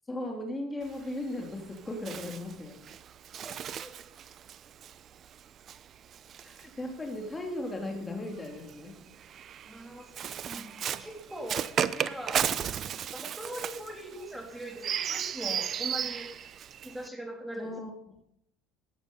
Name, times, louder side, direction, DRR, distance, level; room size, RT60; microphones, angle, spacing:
voice 1, 0.1-2.8 6.4-9.0 17.6-17.9, left 1 dB, 15° left, 2 dB, 3.5 m, -37 dB
Bird, 0.8-7.4 8.3-17.1, right 9 dB, 45° right, 0.8 m, -35 dB
voice 2, 9.6-10.7 11.0-12.5 13.1-16.3 16.8-17.7, right 1 dB, 5° right, 2 dB, 3.5 m, -41 dB
16.0 x 11.0 x 5.7 m, 0.73 s
hypercardioid pair, 80°, 0 cm